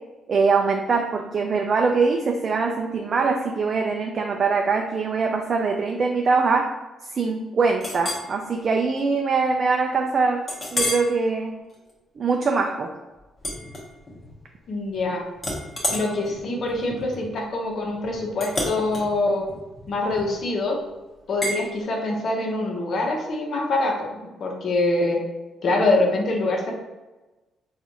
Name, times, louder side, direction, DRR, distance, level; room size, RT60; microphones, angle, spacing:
voice 1, 0.3-6.7 7.1-10.4 10.7-11.5 12.2-12.9, right 4 dB, 50° right, 2 dB, 0.4 m, -22 dB
Chink clink, 7.8-8.3 8.8-9.0 9.4-9.5 10.5-11.1 11.6-11.9 13.4-14.3 14.6-15.0 15.4-20.5 21.4-21.6, left 1 dB, 30° left, 1.0 m, -31 dB
voice 2, 14.7-15.2 15.9-19.5 19.9-20.8 21.3-24.1 24.4-25.2 25.6-26.7, left 2 dB, 60° left, 0 dB, 0.8 m, -24 dB
4.0 x 2.4 x 2.9 m, 1.1 s
cardioid pair, 90°, 0 cm